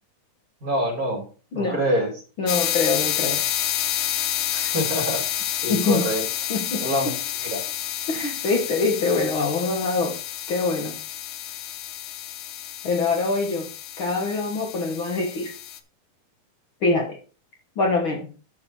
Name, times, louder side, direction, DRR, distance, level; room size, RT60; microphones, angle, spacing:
voice 1, 0.6-1.2 1.5-2.1 4.5-5.2 5.6-6.2 6.8-7.1 7.4-7.6, equal, 25° right, 0 dB, 2.5 m, -25 dB
voice 2, 2.4-3.4 5.7-6.1 6.5-7.2 8.1-10.2 10.5-11.0 12.8-13.7 14.0-15.6 16.8-17.2 17.8-18.3, left 3 dB, 90° left, 2 dB, 1.1 m, -24 dB
sound 1, 2.5-15.8, left 11 dB, 75° left, 2.1 m, -29 dB
9.6 x 6.7 x 4.2 m, 0.36 s
omnidirectional pair, 4.4 m